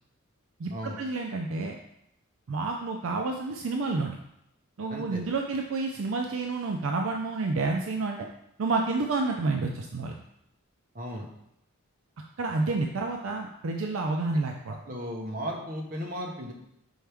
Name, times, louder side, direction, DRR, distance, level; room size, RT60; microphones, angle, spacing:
voice 1, 0.6-1.8 2.5-4.2 4.8-8.2 8.6-10.2 12.4-14.7, right 3 dB, 65° right, 2 dB, 0.4 m, -29 dB
voice 2, 4.9-5.2 10.9-11.3 14.8-16.5, equal, 40° right, 0 dB, 1.0 m, -35 dB
6.3 x 4.4 x 3.4 m, 0.79 s
head